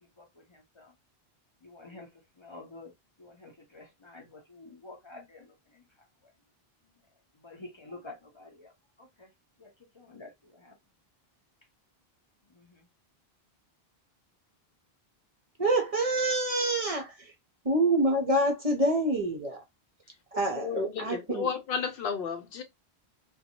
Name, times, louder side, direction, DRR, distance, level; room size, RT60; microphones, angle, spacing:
voice 1, 0.2-0.9 1.6-2.9 3.2-6.1 7.3-8.7 9.0-9.3 9.6-10.8 12.5-12.9, left 2 dB, 35° left, 0.5 m, -49 dB
voice 2, 15.6-17.3 17.6-19.6 20.3-21.5, right 1 dB, 40° right, 0.6 m, -27 dB
voice 3, 20.4-22.6, left 6 dB, 70° left, 0.7 m, -33 dB
2.6 x 2.2 x 2.8 m
omnidirectional pair, 1.0 m